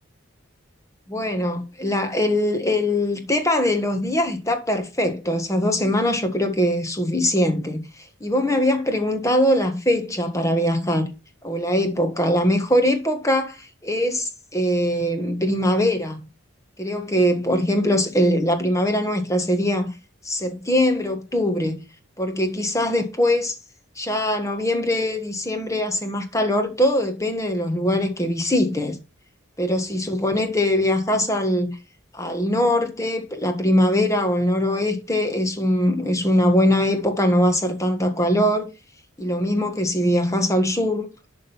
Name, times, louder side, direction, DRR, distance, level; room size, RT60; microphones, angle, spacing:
voice 1, 1.1-7.8 8.2-11.1 11.4-16.3 16.8-19.9 20.2-21.8 22.2-23.5 24.0-29.0 29.6-31.8 32.1-38.7 39.2-41.1, left 1 dB, 15° left, 1.4 m, -22 dB
11.5 x 3.8 x 5.6 m
head